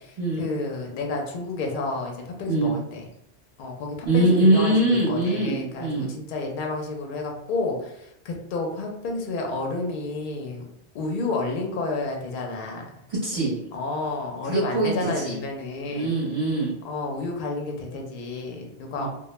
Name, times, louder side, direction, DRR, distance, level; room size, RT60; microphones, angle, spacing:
voice 1, 0.0-3.0 3.6-13.0 13.7-16.1 16.8-19.1, left 3 dB, 60° left, 1 dB, 0.6 m, -30 dB
voice 2, 4.0-6.1 13.1-13.6 14.5-15.4 15.9-16.7 19.0-19.1, right 2 dB, 30° right, -8 dB, 0.7 m, -22 dB
2.1 x 2.1 x 3.0 m, 0.79 s
omnidirectional pair, 1.1 m